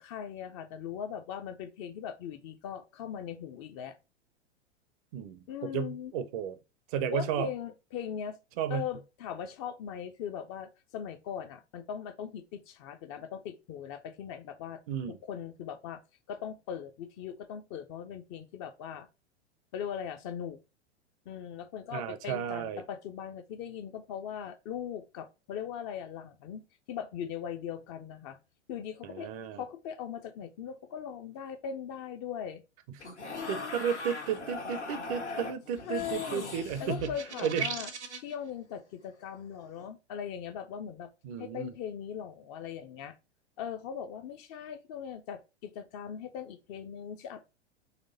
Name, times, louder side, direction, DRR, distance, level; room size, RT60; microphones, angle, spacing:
voice 1, 0.0-3.9 5.5-6.1 7.1-8.4 8.7-14.8 15.2-16.0 16.3-19.1 19.7-20.6 21.3-26.6 26.9-28.4 28.7-32.6 33.3-33.7 35.8-37.9 38.2-41.1 41.4-43.1 43.6-47.5, left 8 dB, 30° left, 0.4 m, -39 dB
voice 2, 5.1-6.6 6.9-7.5 8.6-8.8 14.9-15.2 21.9-22.8 29.0-29.6 33.5-37.1 37.4-37.7 41.2-41.7, right 8 dB, 35° right, 0.5 m, -33 dB
sound 1, 33.0-37.4 39.6-39.9, left 3 dB, 80° left, 1.2 m, -40 dB
sound 2, 37.0-38.3, right 5 dB, 80° right, 0.9 m, -37 dB
4.1 x 3.0 x 3.9 m
figure-of-eight pair, 95°, 34 cm